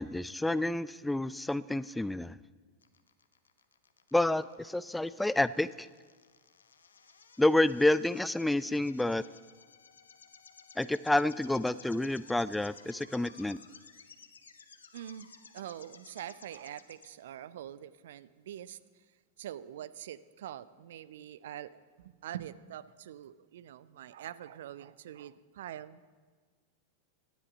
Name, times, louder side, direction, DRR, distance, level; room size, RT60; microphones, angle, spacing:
voice 1, 0.0-2.4 4.1-5.9 7.4-9.2 10.8-13.6, left 1 dB, 5° left, 18 dB, 0.3 m, -29 dB
sound 1, 2.8-17.1, left 5 dB, 70° left, 1.0 m, -56 dB
voice 2, 14.9-15.3 15.5-18.8 19.4-26.0, right 11 dB, 60° right, 17 dB, 0.5 m, -44 dB
17.5 x 12.5 x 5.3 m, 1.5 s
figure-of-eight pair, 90°, 0 cm